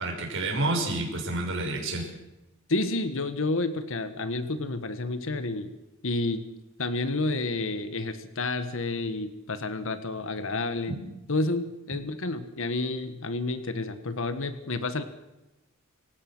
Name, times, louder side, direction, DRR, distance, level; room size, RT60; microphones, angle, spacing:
voice 1, 0.0-2.1 10.9-11.0, right 2 dB, 65° right, 1 dB, 6.7 m, -29 dB
voice 2, 2.7-5.7 6.0-6.4 6.8-10.9 11.3-15.0, left 2 dB, 65° left, 10 dB, 1.6 m, -30 dB
27.5 x 17.0 x 6.3 m, 0.95 s
head